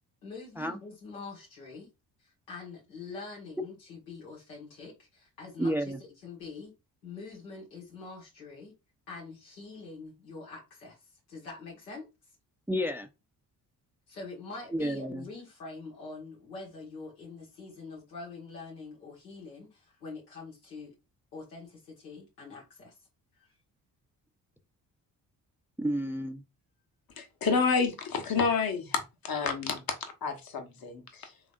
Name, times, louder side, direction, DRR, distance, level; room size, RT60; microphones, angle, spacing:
voice 1, 0.2-1.9 2.2-6.7 7.0-8.7 9.1-11.0 11.3-12.0 14.1-20.9 21.3-22.9 23.4-23.5, left 3 dB, 90° left, 1.6 m, -45 dB
voice 2, 5.6-6.0 12.7-13.1 14.7-15.3 25.8-26.4, equal, 5° right, 0.5 m, -30 dB
voice 3, 27.2-30.0 30.2-31.3, left 5 dB, 45° left, 1.1 m, -29 dB
3.7 x 3.4 x 2.4 m
hypercardioid pair, 45°, 47 cm